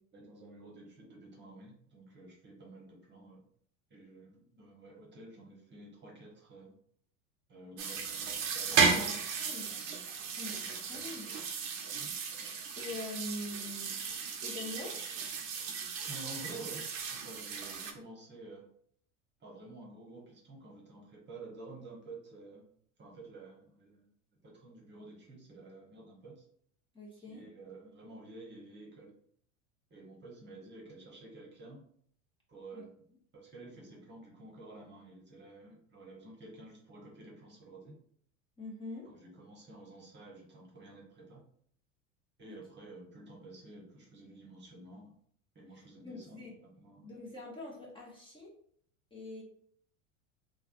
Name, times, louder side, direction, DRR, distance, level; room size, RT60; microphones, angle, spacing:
voice 1, 0.1-3.4 3.9-6.7 7.5-8.2 8.5-9.2 11.9-12.1 16.1-18.7 19.4-22.7 23.0-24.1 24.4-26.4 27.3-29.1 29.9-31.8 32.5-33.0 33.3-37.9 39.0-41.4 42.4-45.1 45.5-47.1, right 2 dB, 25° right, -1 dB, 1.0 m, -51 dB
sound 1, 7.8-17.9, right 5 dB, 75° right, 0.7 m, -35 dB
voice 2, 8.7-9.7 10.3-11.3 11.8-12.0 12.8-14.0 14.4-15.0 26.9-27.4 32.7-32.8 38.6-39.1 45.7-46.5 47.0-48.5 49.1-49.4, left 2 dB, 15° left, -4 dB, 0.9 m, -44 dB
3.3 x 2.3 x 2.5 m, 0.63 s
hypercardioid pair, 90°, 39 cm